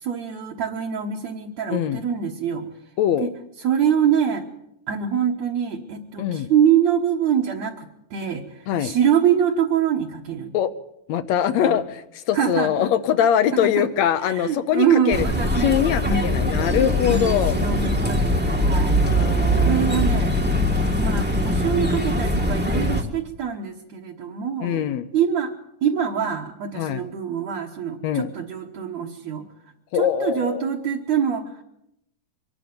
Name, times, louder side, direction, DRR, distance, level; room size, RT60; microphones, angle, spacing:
voice 1, 0.0-2.7 3.2-3.3 3.6-4.5 4.9-10.5 11.6-11.8 12.3-12.9 13.5-13.9 14.3-16.5 17.0-19.0 19.5-20.3 21.0-24.8 25.1-25.5 25.8-29.4 29.9-31.6, right 8 dB, 60° right, -1 dB, 2.5 m, -24 dB
voice 2, 1.7-2.0 3.0-3.3 6.2-6.5 8.7-8.9 10.5-10.7 11.1-15.3 15.6-17.6 19.0-20.1 24.6-25.1 26.8-27.0 28.0-28.3 29.9-30.7, left 9 dB, 70° left, 12 dB, 1.8 m, -23 dB
sound 1, 15.1-23.0, equal, 5° right, 1.0 m, -22 dB
24.0 x 11.5 x 9.5 m, 0.81 s
omnidirectional pair, 3.8 m